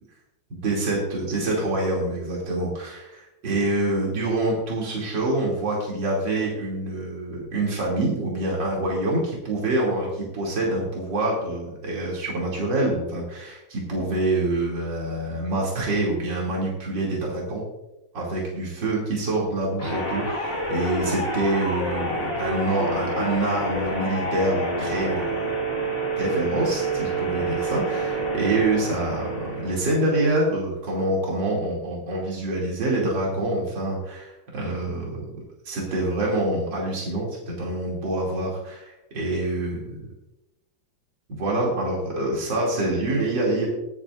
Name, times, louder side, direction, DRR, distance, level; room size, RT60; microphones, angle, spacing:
voice 1, 0.5-17.6 18.1-25.5 26.2-35.3 35.7-40.0 41.3-43.7, right 2 dB, 65° right, -4 dB, 3.5 m, -26 dB
sound 1, 19.8-30.1, right 1 dB, 30° left, 2.2 m, -28 dB
21.5 x 9.7 x 2.6 m, 0.95 s
omnidirectional pair, 2.2 m